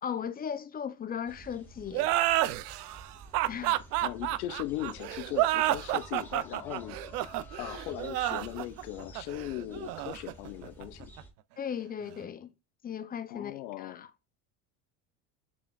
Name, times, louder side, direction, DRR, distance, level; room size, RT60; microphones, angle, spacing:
voice 1, 0.0-2.1 3.5-3.8 11.6-12.5 12.8-14.1, left 8 dB, 20° left, 0.5 m, -37 dB
sound 1, 1.3-11.3, right 1 dB, 5° left, 1.7 m, -50 dB
sound 2, 1.9-11.2, right 15 dB, 85° right, 0.5 m, -30 dB
voice 2, 4.0-7.0 7.6-11.1 13.3-14.1, left 14 dB, 85° left, 0.8 m, -38 dB
6.9 x 3.4 x 2.3 m
supercardioid pair, 110°, 45 cm